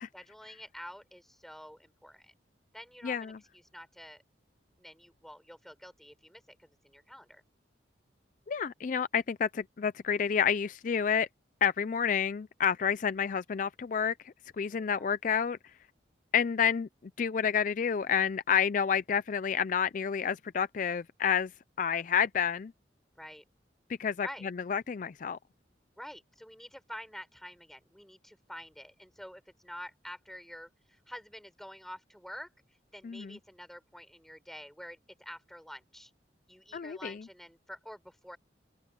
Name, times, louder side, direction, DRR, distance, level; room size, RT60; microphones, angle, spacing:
voice 1, 0.1-2.3 2.7-4.2 4.8-7.4 14.7-15.1 23.2-23.4 24.2-24.5 26.0-32.5 32.9-36.1 36.5-38.4, equal, ahead, 6.5 m, -48 dB
voice 2, 3.0-3.4 8.5-11.3 11.6-15.6 16.3-16.9 17.2-21.5 21.8-22.7 24.0-24.3 24.7-25.4 33.0-33.4 36.7-37.2, left 7 dB, 45° left, 0.4 m, -29 dB
open air
head